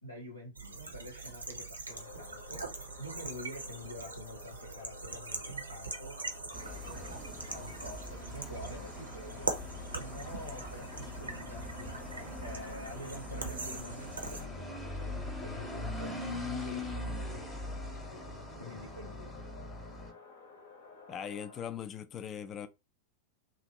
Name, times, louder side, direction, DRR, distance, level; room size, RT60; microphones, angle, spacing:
voice 1, 0.0-9.5 10.0-18.2 18.6-19.3, left 1 dB, 90° left, 1.0 m, -48 dB
sound 1, 0.6-14.5, right 3 dB, 80° right, 0.6 m, -42 dB
sound 2, 1.9-21.6, left 4 dB, 55° left, 0.7 m, -53 dB
sound 3, 6.5-20.1, left 1 dB, 10° left, 0.8 m, -42 dB
voice 2, 21.1-22.7, left 8 dB, 25° left, 0.4 m, -40 dB
2.9 x 2.5 x 2.7 m
figure-of-eight pair, 90°, 0 cm